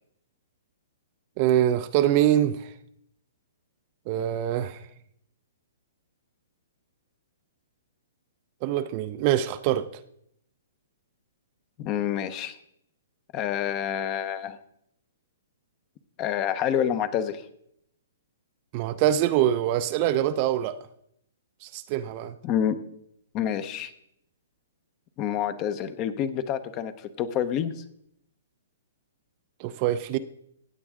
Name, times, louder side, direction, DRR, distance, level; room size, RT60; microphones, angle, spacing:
voice 1, 1.4-2.7 4.1-4.8 8.6-9.9 18.7-20.8 21.6-22.3 29.6-30.2, right 12 dB, 35° right, 0.5 m, -24 dB
voice 2, 11.8-12.6 13.3-14.6 16.2-17.4 22.4-22.8 23.3-23.9 25.2-27.8, left 9 dB, 30° left, 0.8 m, -28 dB
16.0 x 9.0 x 3.7 m
hypercardioid pair, 150°, 0 cm